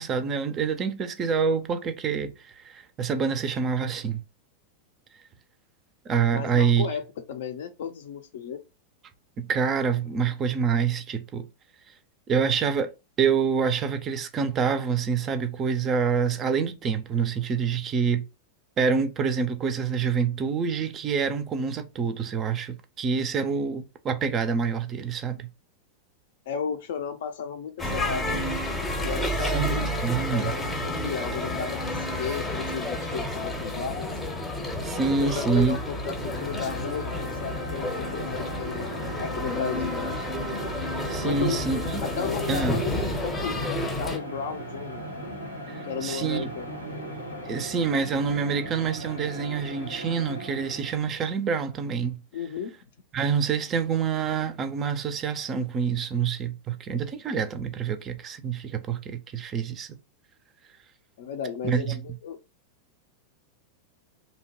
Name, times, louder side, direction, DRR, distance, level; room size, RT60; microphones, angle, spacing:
voice 1, 0.0-4.2 6.1-6.9 9.4-11.4 12.3-18.2 18.8-25.5 29.4-30.5 34.8-35.8 41.1-42.0 42.5-42.8 45.7-46.5 47.4-52.2 53.1-59.9 61.6-62.0, right 6 dB, 30° right, 0.4 m, -26 dB
voice 2, 6.3-8.6 26.5-28.4 29.0-34.1 35.2-40.1 41.2-41.6 42.0-45.0 45.8-46.7 52.3-52.7 61.2-62.4, left 7 dB, 55° left, 0.4 m, -34 dB
sound 1, 27.8-44.2, left 1 dB, 15° left, 0.7 m, -30 dB
sound 2, 34.8-47.5, right 1 dB, 85° right, 0.5 m, -45 dB
sound 3, 35.9-51.2, right 1 dB, 80° left, 0.8 m, -38 dB
2.7 x 2.1 x 2.9 m
figure-of-eight pair, 90°, 0 cm